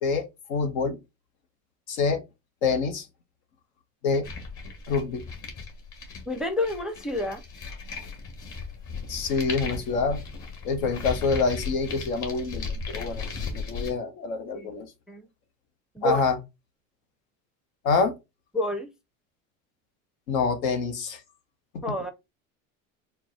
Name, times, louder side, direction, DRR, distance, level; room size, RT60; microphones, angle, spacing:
voice 1, 0.0-1.0 1.9-2.2 2.6-3.1 4.0-4.3 4.9-5.2 9.1-10.2 10.6-14.9 16.0-16.4 17.8-18.1 20.3-21.2, left 4 dB, 85° left, 1.0 m, -26 dB
sound 1, 4.2-13.9, left 4 dB, 45° left, 1.6 m, -36 dB
voice 2, 6.3-7.4 14.5-14.7 15.1-15.3 16.0-16.2 18.5-18.9 21.8-22.1, left 1 dB, ahead, 0.5 m, -28 dB
4.5 x 2.2 x 3.9 m
supercardioid pair, 105°, 40 cm